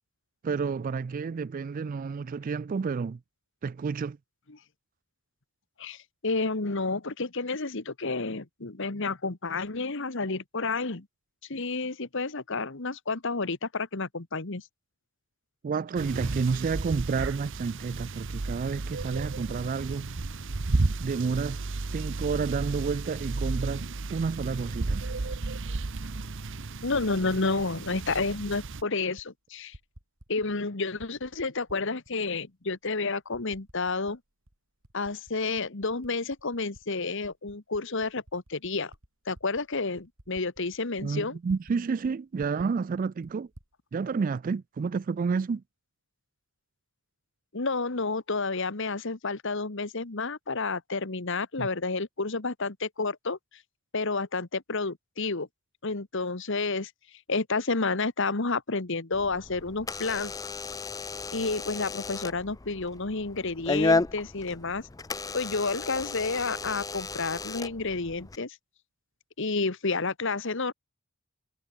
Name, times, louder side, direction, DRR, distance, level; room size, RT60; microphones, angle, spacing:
voice 1, 0.4-3.2 3.6-4.2 15.6-20.1 21.0-21.6 21.9-25.1 41.0-43.5 43.9-45.6 51.6-51.7, right 5 dB, 40° right, 0.3 m, -30 dB
voice 2, 5.8-11.1 11.5-14.6 26.8-29.7 30.3-34.2 34.9-38.9 39.3-41.4 47.5-53.4 53.9-55.5 55.8-56.9 57.3-60.3 61.3-64.9 65.3-68.6 69.4-70.7, left 3 dB, 60° left, 1.5 m, -30 dB
sound 1, 16.0-28.8, right 3 dB, 60° right, 0.9 m, -33 dB
Typing, 28.8-29.3 29.6-30.6 30.9-32.1 32.7-32.8 33.3-34.2 34.5-36.8 37.2-41.8 42.0-42.1 42.4-43.7, right 1 dB, 80° right, 3.9 m, -54 dB
Door / Alarm, 59.1-68.4, left 3 dB, 15° left, 0.5 m, -33 dB
head